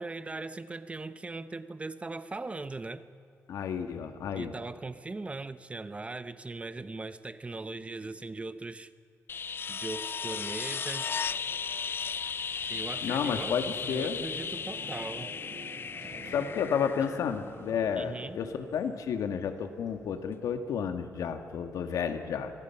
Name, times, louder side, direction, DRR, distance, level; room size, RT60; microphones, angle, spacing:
voice 1, 0.0-3.0 4.4-8.9 9.7-11.1 12.7-13.6 13.8-15.3 17.9-18.4, right 3 dB, 20° right, 0.8 m, -39 dB
voice 2, 3.5-4.5 13.0-14.2 16.3-22.5, left 7 dB, 90° left, 1.7 m, -31 dB
sound 1, 9.3-18.0 20.3-20.4, left 6 dB, 40° left, 0.4 m, -36 dB
sound 2, 11.1-20.8, right 2 dB, 80° right, 5.4 m, -50 dB
25.5 x 18.5 x 5.9 m
cardioid pair, 110°, 6 cm